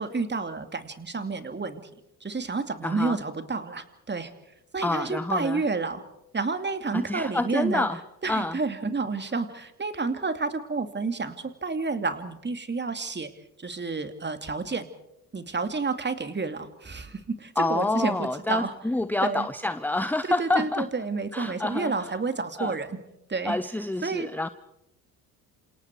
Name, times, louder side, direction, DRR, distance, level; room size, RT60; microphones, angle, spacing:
voice 1, 0.0-1.8 2.2-4.3 4.7-6.0 6.3-7.9 8.2-13.3 13.6-14.9 15.3-18.7 19.2-19.5 20.4-23.0 23.3-23.6 24.0-24.3, right 4 dB, 25° right, 9 dB, 2.6 m, -30 dB
voice 2, 2.8-3.2 4.8-5.6 6.9-8.6 17.6-20.9 21.3-22.1 22.6-22.8 23.4-24.5, left 2 dB, 5° left, 13 dB, 0.8 m, -28 dB
28.0 x 27.5 x 4.7 m, 0.83 s
hypercardioid pair, 55°, 44 cm